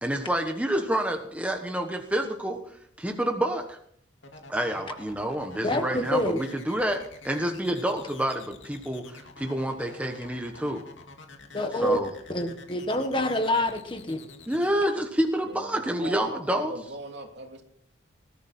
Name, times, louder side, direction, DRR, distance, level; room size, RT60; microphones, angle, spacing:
voice 1, 0.0-3.8 4.5-10.8 11.7-12.1 14.5-16.7, right 1 dB, 5° right, 3 dB, 1.2 m, -28 dB
sound 1, 4.2-14.7, left 3 dB, 70° left, 2.4 m, -48 dB
voice 2, 5.6-6.4 11.5-12.0 12.3-14.2, left 1 dB, 25° left, 7 dB, 1.4 m, -26 dB
voice 3, 15.4-17.6, right 2 dB, 60° right, 2 dB, 3.1 m, -40 dB
20.5 x 12.5 x 4.4 m, 0.64 s
head